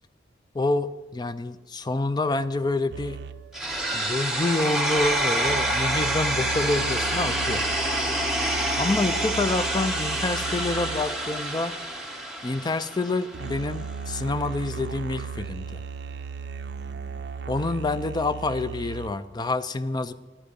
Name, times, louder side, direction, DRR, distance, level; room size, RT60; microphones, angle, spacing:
voice 1, 0.5-3.2 3.9-7.6 8.8-11.7 12.4-15.8 17.5-20.1, left 2 dB, 20° left, 13 dB, 0.4 m, -27 dB
sound 1, 2.9-11.3 13.3-19.1, right 5 dB, 60° right, 0.5 m, -36 dB
sound 2, 3.5-13.5, right 1 dB, ahead, 1.0 m, -27 dB
11.0 x 9.8 x 5.2 m, 1.2 s
head